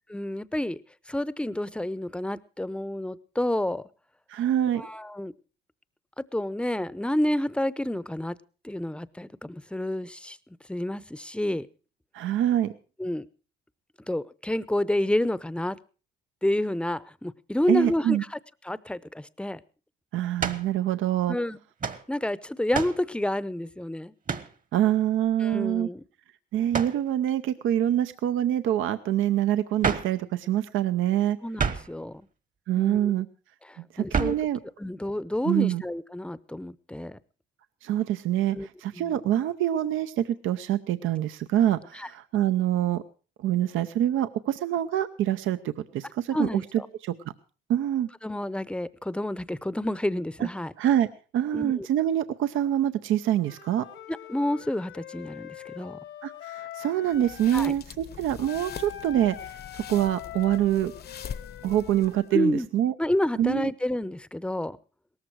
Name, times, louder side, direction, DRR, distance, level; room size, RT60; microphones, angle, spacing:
voice 1, 0.1-0.8 1.1-3.8 4.8-5.3 6.2-8.4 8.6-10.4 10.7-11.7 13.0-13.3 14.1-15.8 16.4-18.4 18.6-19.6 21.3-21.6 22.1-24.1 25.4-26.0 31.4-32.3 32.8-33.1 33.7-34.4 34.8-37.2 38.5-38.7 38.9-39.1 41.9-42.1 46.3-46.9 48.2-50.7 51.5-51.9 54.1-56.0 57.5-57.7 62.3-62.7 63.0-64.8, left 1 dB, 5° left, 18 dB, 0.7 m, -29 dB
voice 2, 4.3-4.9 12.1-12.7 17.7-18.2 20.1-21.4 24.7-25.9 26.5-31.4 32.7-33.3 33.9-34.6 35.4-35.8 37.8-43.0 43.4-45.6 45.9-46.6 47.0-47.1 47.7-48.1 50.8-51.1 51.3-53.8 56.2-60.9 61.6-62.9 63.4-63.7, right 11 dB, 80° right, 11 dB, 0.7 m, -25 dB
sound 1, 20.4-20.7 21.8-22.0 22.7-23.0 24.3-24.5 26.7-27.0 29.8-30.2 31.6-32.0 34.1-34.5, right 5 dB, 40° right, 1.3 m, -29 dB
Wind instrument woodwind instrument, 53.4-57.7 58.4-62.3, left 11 dB, 75° left, 1.4 m, -43 dB
sound 2, 57.1-62.4, left 8 dB, 50° left, 0.9 m, -43 dB
18.0 x 14.0 x 4.6 m, 0.36 s
cardioid pair, 90°, 20 cm